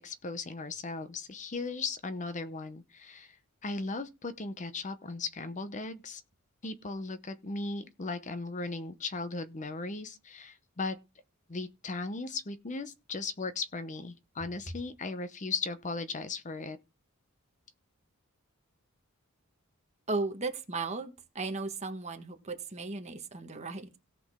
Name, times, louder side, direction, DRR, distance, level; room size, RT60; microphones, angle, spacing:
voice 1, 0.0-3.4 3.6-6.2 6.6-11.0 11.5-16.8, left 3 dB, 35° left, 0.8 m, -37 dB
voice 2, 20.1-23.9, right 3 dB, 30° right, 1.4 m, -36 dB
17.5 x 6.1 x 3.6 m
head